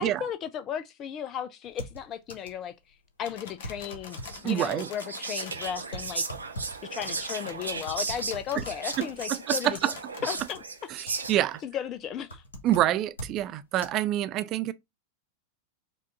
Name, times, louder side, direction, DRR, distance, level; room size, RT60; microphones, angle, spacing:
voice 1, 0.0-6.3 6.8-9.8 10.2-10.6 11.6-12.4, left 9 dB, 30° left, 0.3 m, -35 dB
sound 1, 1.7-2.6 2.9-3.0 3.3-4.8 5.3-9.4 9.7-10.6 10.9-11.5 11.8-13.4 13.8-13.9, equal, 70° left, 1.1 m, -42 dB
sound 2, 3.2-5.7 7.2-10.6, left 5 dB, 55° left, 0.9 m, -46 dB
Whispering, 4.1-11.6, right 4 dB, 80° right, 0.7 m, -35 dB
voice 2, 4.4-4.9 8.6-8.7 9.0-9.9 10.9-11.6 12.6-14.7, right 13 dB, 35° right, 0.4 m, -27 dB
4.8 x 2.3 x 4.0 m
figure-of-eight pair, 90°, 0 cm